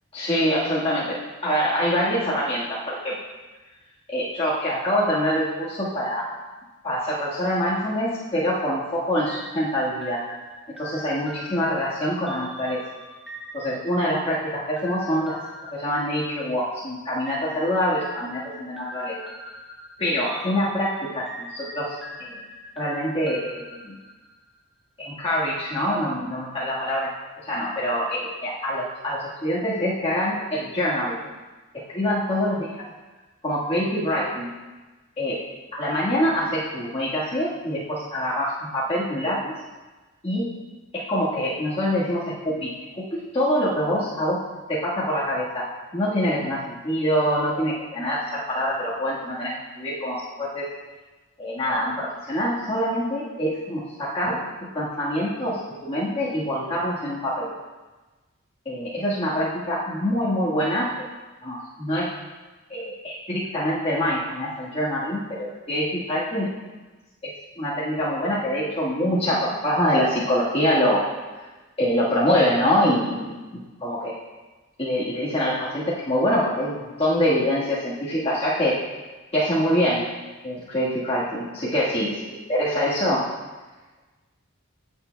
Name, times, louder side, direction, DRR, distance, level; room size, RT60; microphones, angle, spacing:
voice 1, 0.1-3.1 4.1-6.3 6.8-10.3 10.8-12.8 13.5-15.4 15.7-19.2 20.0-22.4 22.8-24.0 25.0-27.1 27.4-31.2 31.9-32.5 33.4-34.5 35.2-35.4 35.7-39.5 40.2-40.5 40.9-44.4 44.7-50.7 51.4-54.4 54.7-57.5 58.6-60.9 61.4-62.1 62.7-66.5 67.2-71.1 71.8-74.2 74.8-78.8 79.3-80.1 80.4-82.1 82.5-83.3, equal, 30° left, -9 dB, 1.5 m, -25 dB
sound 1, 9.3-16.7 17.3-24.5, equal, ahead, 1.0 m, -42 dB
16.0 x 6.9 x 2.2 m, 1.2 s
head